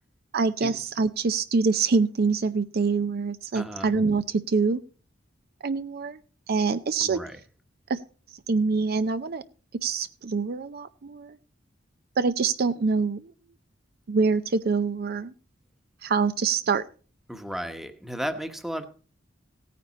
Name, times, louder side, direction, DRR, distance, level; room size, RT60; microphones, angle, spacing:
voice 1, 0.3-4.8 5.6-6.2 6.5-7.2 7.9-8.0 8.5-9.4 9.8-11.4 12.2-13.3 14.1-15.3 16.0-16.8, right 4 dB, 55° right, 13 dB, 0.5 m, -25 dB
voice 2, 3.5-3.9 7.0-7.4 17.3-18.9, equal, ahead, 8 dB, 1.1 m, -34 dB
16.5 x 9.4 x 4.1 m, 0.39 s
head